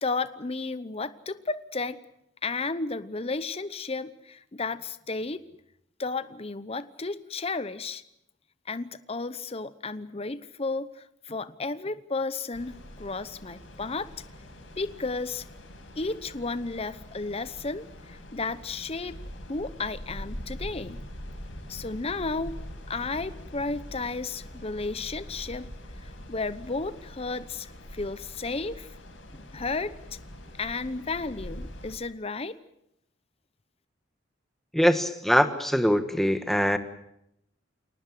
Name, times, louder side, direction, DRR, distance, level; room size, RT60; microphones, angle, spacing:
voice 1, 0.0-2.0 2.4-5.4 6.0-8.0 8.7-14.1 14.8-15.4 15.9-19.2 19.5-21.0 21.7-22.5 22.9-25.7 26.0-28.9 29.3-30.0 30.6-32.6, left 3 dB, 30° left, 14 dB, 0.9 m, -33 dB
sound 1, 12.5-32.0, equal, 75° left, 5.7 m, -43 dB
voice 2, 34.7-36.8, equal, ahead, 8 dB, 1.5 m, -23 dB
27.5 x 19.0 x 7.8 m, 0.77 s
head